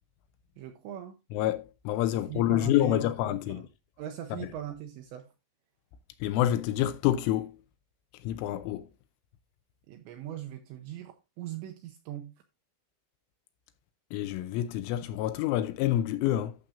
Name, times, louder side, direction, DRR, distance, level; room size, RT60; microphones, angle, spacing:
voice 1, 0.6-1.2 2.1-3.6 4.0-5.3 9.9-12.4, right 11 dB, 85° right, 2.6 m, -40 dB
voice 2, 1.3-3.6 6.2-7.5 8.2-8.8 14.1-16.5, left 13 dB, 80° left, 3.0 m, -27 dB
12.0 x 6.9 x 2.4 m
omnidirectional pair, 6.0 m